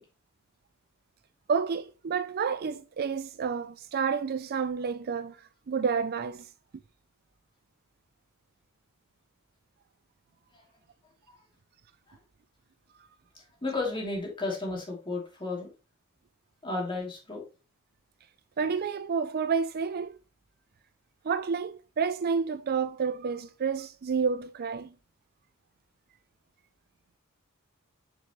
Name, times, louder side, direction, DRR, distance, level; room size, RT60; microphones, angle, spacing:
voice 1, 1.5-5.4 5.7-6.5 18.6-20.1 21.2-24.9, right 6 dB, 45° right, 0.4 m, -29 dB
voice 2, 13.6-15.7 16.6-17.4, left 2 dB, 25° left, 2.9 m, -33 dB
6.7 x 6.1 x 3.1 m
head